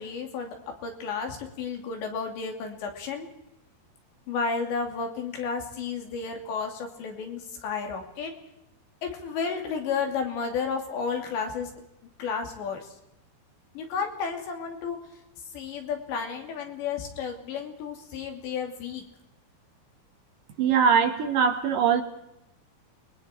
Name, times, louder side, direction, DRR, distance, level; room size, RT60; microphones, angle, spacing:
voice 1, 0.0-3.3 4.3-8.3 9.0-11.7 12.2-12.9 13.7-15.0 15.5-19.0, left 5 dB, 85° left, 3 dB, 5.1 m, -32 dB
voice 2, 20.6-22.0, right 7 dB, 65° right, 6 dB, 2.5 m, -22 dB
29.5 x 22.5 x 4.5 m, 0.86 s
omnidirectional pair, 4.9 m